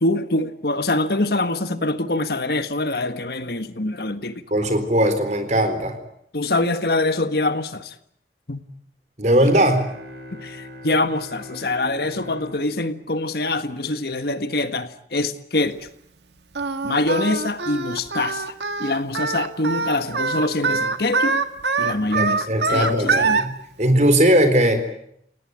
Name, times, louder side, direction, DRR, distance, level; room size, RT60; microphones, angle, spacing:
voice 1, 0.0-4.4 6.3-7.9 8.5-8.6 10.3-15.9 16.8-18.5 18.8-21.4 21.8-23.4, left 2 dB, 60° left, 1.5 m, -24 dB
voice 2, 4.5-5.9 9.2-9.9 22.1-24.8, right 1 dB, 40° right, 4.1 m, -19 dB
sound 1, 9.4-14.1, left 1 dB, 60° right, 4.9 m, -41 dB
Singing, 16.5-23.4, right 4 dB, 75° right, 1.9 m, -23 dB
29.0 x 18.0 x 9.4 m
head